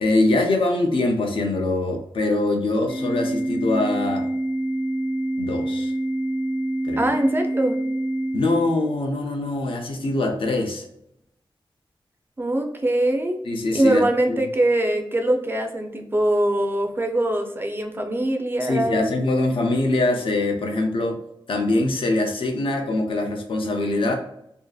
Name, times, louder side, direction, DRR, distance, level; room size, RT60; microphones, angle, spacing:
voice 1, 0.0-4.3 5.4-5.9 6.8-7.1 8.3-10.9 13.5-14.4 18.6-21.2 21.5-24.1, left 2 dB, 75° left, 3 dB, 0.5 m, -23 dB
Organ, 2.9-8.9, right 1 dB, 80° right, 0.6 m, -26 dB
voice 2, 7.0-7.8 12.4-13.4 13.7-19.1, right 1 dB, 25° right, 4 dB, 0.4 m, -22 dB
2.6 x 2.4 x 2.2 m, 0.77 s
wide cardioid pair, 150°, 9 cm